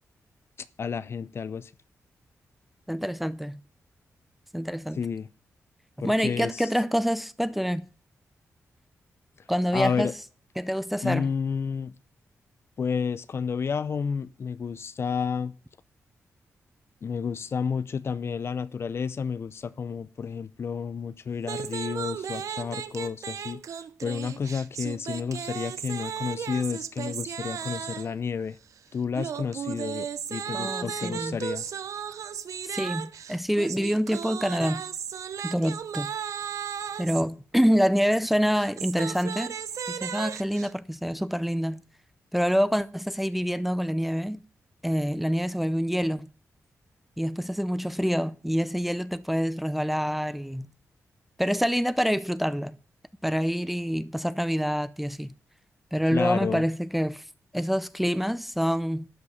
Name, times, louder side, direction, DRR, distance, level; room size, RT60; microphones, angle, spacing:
voice 1, 0.8-1.7 5.0-5.3 6.0-6.7 9.7-10.1 11.0-11.9 12.8-15.5 17.0-23.6 24.0-28.6 28.9-31.6 56.1-56.6, left 6 dB, 50° left, 0.6 m, -31 dB
voice 2, 2.9-3.6 4.5-5.0 6.0-7.9 9.5-10.1 10.6-11.3 30.5-31.4 32.6-34.8 35.4-36.1 37.0-39.5 39.9-41.8 42.3-44.4 44.8-46.3 47.2-50.7 51.4-52.8 53.2-55.3 55.9-57.2 57.5-59.1, equal, ahead, 0.5 m, -26 dB
sound 1, 21.4-28.2 29.1-37.2 38.5-40.7, right 8 dB, 75° right, 0.7 m, -35 dB
12.0 x 5.3 x 8.1 m
wide cardioid pair, 110°, 5 cm